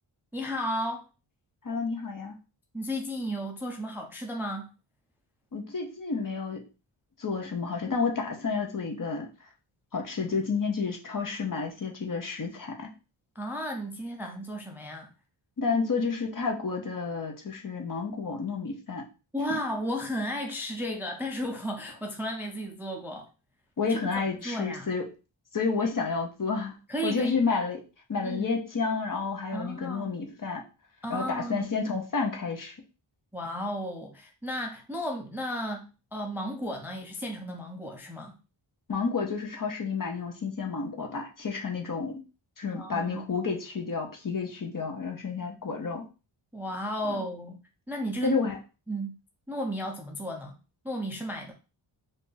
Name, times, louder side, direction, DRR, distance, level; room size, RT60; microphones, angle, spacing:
voice 1, 0.3-1.0 2.7-4.7 13.4-15.1 19.3-23.3 23.9-24.0 24.3-24.9 26.9-27.4 28.2-28.5 29.5-30.1 31.0-31.7 33.3-35.9 36.1-38.3 42.7-43.3 46.5-47.6 47.9-48.4 48.9-49.1 49.5-50.6 50.8-51.5, equal, 5° right, 0.4 m, -34 dB
voice 2, 1.6-2.3 5.5-6.6 7.2-9.3 9.9-12.9 15.6-19.0 19.5-19.6 23.8-25.1 25.5-26.8 27.0-27.8 28.1-30.6 31.1-32.7 38.9-42.2 42.6-46.0 47.1-47.2 48.2-48.6, left 4 dB, 40° left, 0.7 m, -30 dB
2.6 x 2.6 x 3.8 m
wide cardioid pair, 95°, 49 cm